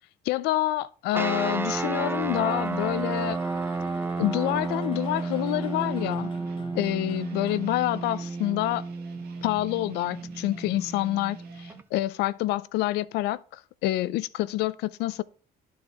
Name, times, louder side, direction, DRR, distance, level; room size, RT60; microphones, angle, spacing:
voice 1, 0.3-3.4 4.2-6.3 6.7-8.8 9.4-15.2, left 15 dB, 85° left, 0.4 m, -27 dB
sound 1, 1.1-9.3, left 5 dB, 30° left, 1.0 m, -48 dB
sound 2, 1.1-11.8, right 3 dB, 15° right, 0.4 m, -32 dB
sound 3, 4.9-11.8, right 5 dB, 70° right, 1.3 m, -52 dB
11.5 x 4.1 x 3.5 m
cardioid pair, 110°, 17 cm